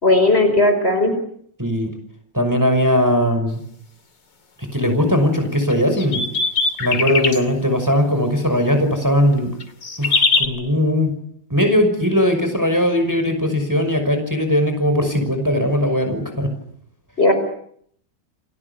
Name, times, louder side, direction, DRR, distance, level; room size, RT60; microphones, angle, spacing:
voice 1, 0.0-1.1 17.2-17.3, left 2 dB, 35° left, 7 dB, 5.3 m, -15 dB
voice 2, 1.6-1.9 2.3-3.6 4.6-6.3 6.8-9.5 10.0-11.1 11.5-16.5, equal, 10° right, 6 dB, 5.8 m, -19 dB
sound 1, 5.7-7.4 9.6-10.5, left 4 dB, 75° left, 3.5 m, -20 dB
29.5 x 21.5 x 8.3 m, 0.67 s
omnidirectional pair, 1.9 m